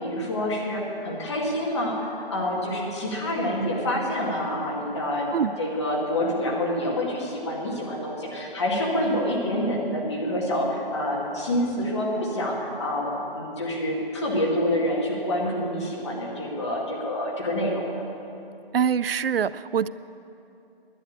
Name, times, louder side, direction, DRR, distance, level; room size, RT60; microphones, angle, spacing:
voice 1, 0.0-5.3 5.6-17.8, left 1 dB, 30° left, -3 dB, 2.2 m, -27 dB
voice 2, 18.7-19.9, right 7 dB, 70° right, 17 dB, 0.5 m, -24 dB
11.0 x 9.0 x 8.5 m, 2.8 s
hypercardioid pair, 170°, 30 cm